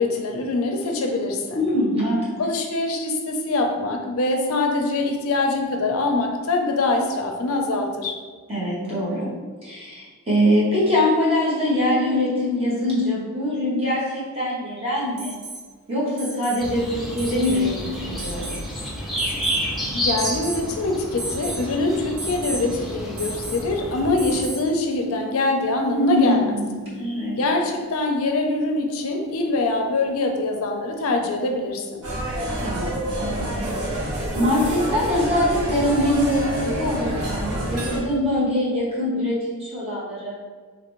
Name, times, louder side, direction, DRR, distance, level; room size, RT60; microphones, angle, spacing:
voice 1, 0.0-1.6 2.4-8.2 19.9-26.5 27.4-32.0, left 2 dB, 65° left, 3 dB, 0.4 m, -24 dB
voice 2, 1.5-2.4 8.5-9.3 9.6-15.4 15.9-18.6 25.9-27.4 32.6-34.1 34.3-40.4, left 1 dB, 25° right, -8 dB, 1.0 m, -23 dB
Alarm, 15.2-15.6 16.2-16.6 17.2-17.6 18.2-18.6 19.2-19.7 20.2-20.7 21.2-21.6 22.2-22.6 23.2-23.7 24.2-24.7 26.4-26.5, right 2 dB, 45° right, 0.6 m, -34 dB
sound 1, 16.6-24.4, equal, ahead, 0.5 m, -30 dB
sound 2, 32.0-38.0, right 1 dB, 75° right, 0.9 m, -27 dB
3.0 x 2.5 x 3.0 m, 1.5 s
head